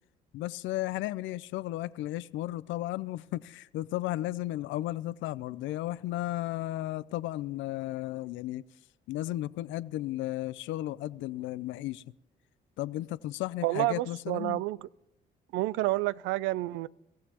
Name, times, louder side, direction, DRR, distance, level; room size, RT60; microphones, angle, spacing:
voice 1, 0.3-8.6 9.1-12.0 12.8-14.6, left 15 dB, 75° left, 0.4 m, -34 dB
voice 2, 13.6-14.8 15.5-16.9, right 18 dB, 80° right, 0.4 m, -29 dB
25.0 x 15.0 x 2.9 m
supercardioid pair, 65°, 20 cm